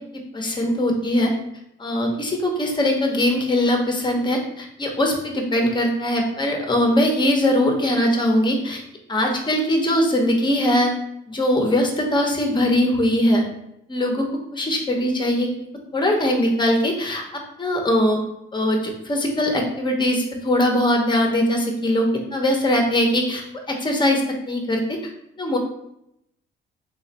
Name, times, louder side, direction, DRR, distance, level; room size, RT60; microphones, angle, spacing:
voice 1, 0.3-1.3 1.8-8.8 9.1-10.9 11.3-13.4 13.9-14.2 14.5-15.5 15.9-18.2 18.5-25.0 25.4-25.6, left 1 dB, 25° left, 2 dB, 0.8 m, -21 dB
3.1 x 2.4 x 4.1 m, 0.78 s
cardioid pair, 90°, 20 cm